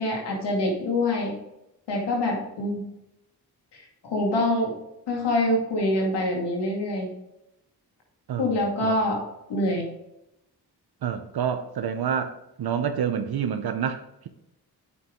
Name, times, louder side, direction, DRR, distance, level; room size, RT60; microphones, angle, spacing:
voice 1, 0.0-1.3 1.9-2.8 4.0-4.7 5.1-7.1 8.4-9.2 9.5-9.9, left 1 dB, 90° left, -1 dB, 2.2 m, -25 dB
voice 2, 8.3-8.9 11.0-14.3, right 8 dB, 65° right, 8 dB, 0.8 m, -28 dB
8.3 x 5.3 x 3.8 m, 0.87 s
cardioid pair, 45°, 40 cm